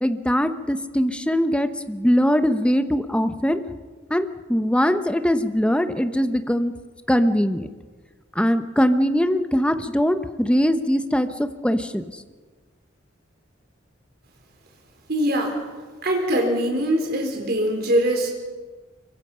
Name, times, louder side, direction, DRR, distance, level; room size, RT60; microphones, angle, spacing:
voice 1, 0.0-3.6 4.1-6.7 7.1-7.7 8.4-12.0, equal, 5° left, 9 dB, 0.9 m, -21 dB
voice 2, 15.1-15.6 16.0-18.3, right 1 dB, 55° right, 2 dB, 4.4 m, -22 dB
25.0 x 23.0 x 5.7 m, 1.4 s
head